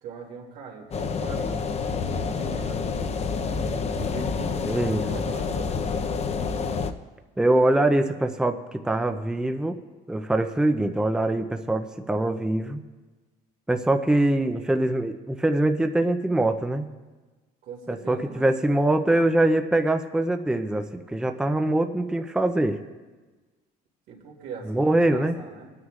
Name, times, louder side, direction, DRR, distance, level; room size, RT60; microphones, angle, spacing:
voice 1, 0.0-1.6 2.1-3.1 3.7-5.7 17.6-18.5 24.1-25.7, right 5 dB, 85° right, -1 dB, 2.5 m, -41 dB
sound 1, 0.9-6.9, left 5 dB, 40° left, 0.7 m, -28 dB
voice 2, 4.6-5.0 7.4-9.8 10.1-12.8 13.7-16.9 17.9-22.8 24.7-25.4, right 1 dB, 5° right, 6 dB, 0.6 m, -23 dB
27.0 x 9.6 x 2.5 m, 1.3 s
cardioid pair, 110°, 17 cm